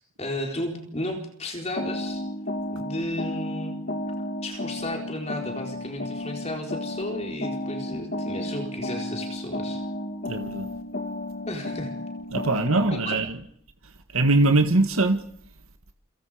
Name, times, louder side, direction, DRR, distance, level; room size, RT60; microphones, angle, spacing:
voice 1, 0.2-2.2 2.7-3.8 4.4-9.8 11.5-11.9 12.9-13.2, left 1 dB, 30° left, 4.2 m, -33 dB
sound 1, 1.8-13.0, left 1 dB, 45° left, 1.8 m, -33 dB
voice 2, 10.3-10.7 12.3-13.4 14.1-15.2, right 2 dB, 80° right, 1.8 m, -22 dB
29.0 x 26.5 x 5.1 m
head